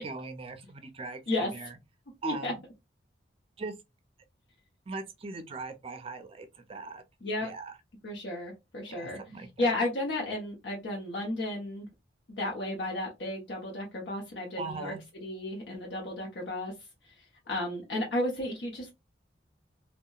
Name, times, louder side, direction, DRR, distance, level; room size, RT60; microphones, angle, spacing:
voice 1, 0.0-1.2 1.5-1.8 2.2-2.6 3.6-3.7 4.9-7.0 7.4-7.7 8.9-9.7 14.6-15.0, right 3 dB, 30° right, 0.4 m, -40 dB
voice 2, 2.2-2.5 7.2-7.5 8.0-9.2 9.6-11.9 12.4-14.9 15.2-16.7 17.5-18.9, left 1 dB, 75° left, 0.8 m, -33 dB
2.8 x 2.1 x 2.2 m
head